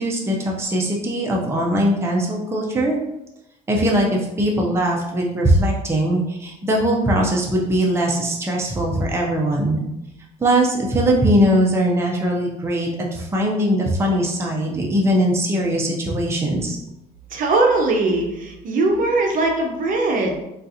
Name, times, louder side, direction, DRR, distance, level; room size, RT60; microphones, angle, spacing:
voice 1, 0.0-3.0 3.7-9.8 10.4-16.8, right 1 dB, 15° right, -1 dB, 0.5 m, -20 dB
voice 2, 17.3-20.4, right 2 dB, 55° right, 2 dB, 0.7 m, -20 dB
3.8 x 2.4 x 2.7 m, 0.87 s
cardioid pair, 110°, 17 cm